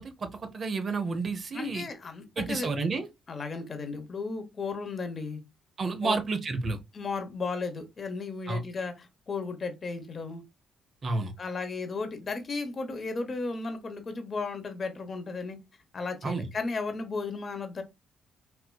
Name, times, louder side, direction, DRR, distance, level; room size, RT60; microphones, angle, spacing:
voice 1, 0.0-1.8 2.4-3.1 5.8-6.8 8.5-8.6 11.0-11.3 16.2-16.5, right 3 dB, 45° right, 0.6 m, -30 dB
voice 2, 1.5-2.7 3.3-5.4 6.0-6.2 6.9-10.4 11.4-15.6 15.9-17.8, left 4 dB, 40° left, 0.8 m, -34 dB
4.4 x 2.1 x 2.2 m
cardioid pair, 90°, 0 cm